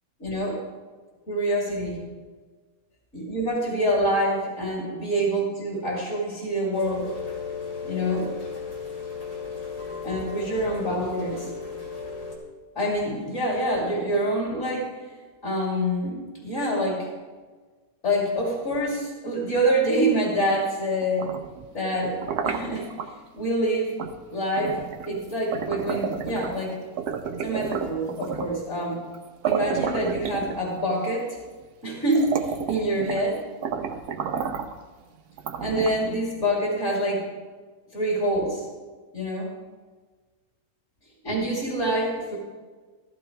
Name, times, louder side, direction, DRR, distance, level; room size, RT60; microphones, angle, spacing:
voice 1, 0.2-0.6 1.3-2.1 3.1-7.1 7.8-8.3 10.0-11.5 12.7-14.9 15.4-17.1 18.0-21.3 21.7-22.2 22.4-22.9 23.3-24.0 24.3-24.8 25.1-26.8 27.4-29.0 29.4-31.4 31.8-33.4 35.6-37.3 37.9-38.6 39.1-39.5 41.2-42.4, right 1 dB, 45° left, -4 dB, 3.2 m, -26 dB
Rain, 6.7-12.3, left 5 dB, 60° left, 3.0 m, -35 dB
sound 1, 21.0-23.1 24.0-24.2 24.6-26.6 27.0-28.6 29.1-29.2 29.4-30.9 31.6-31.7 32.0-33.3 33.6-34.8 35.4-36.2, right 7 dB, 65° right, 1.2 m, -31 dB
14.5 x 13.5 x 3.3 m, 1.4 s
omnidirectional pair, 1.8 m